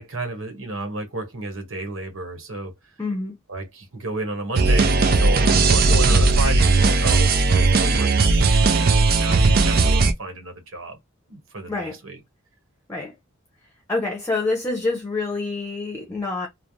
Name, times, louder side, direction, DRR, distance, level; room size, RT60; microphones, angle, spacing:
voice 1, 0.0-2.7 3.5-11.0 11.3-12.2, right 2 dB, 80° right, 1.1 m, -32 dB
voice 2, 3.0-3.3 11.7-12.0 12.9-13.1 13.9-16.5, left 3 dB, 15° left, 0.7 m, -26 dB
sound 1, 4.6-10.1, right 3 dB, 45° right, 0.5 m, -17 dB
3.2 x 2.0 x 2.6 m
head